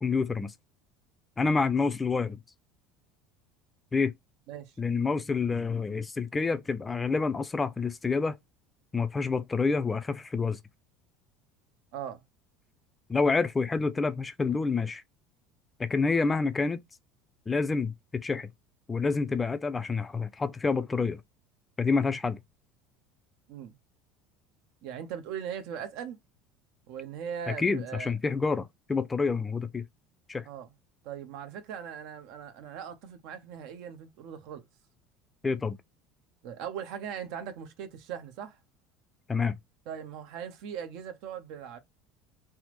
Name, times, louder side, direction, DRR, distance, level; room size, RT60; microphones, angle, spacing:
voice 1, 0.0-0.5 1.4-2.4 3.9-4.1 4.8-8.4 8.9-10.6 13.1-15.0 15.8-16.8 17.5-18.5 18.9-21.2 21.8-22.4 27.5-29.8 30.3-30.5 35.4-35.8 39.3-39.6, left 4 dB, 15° left, 0.3 m, -28 dB
voice 2, 24.8-26.2 26.9-28.1 30.5-30.7 31.0-34.6 36.4-38.6 39.9-41.8, right 8 dB, 65° right, 0.7 m, -39 dB
3.4 x 2.0 x 3.0 m
supercardioid pair, 120°, 0 cm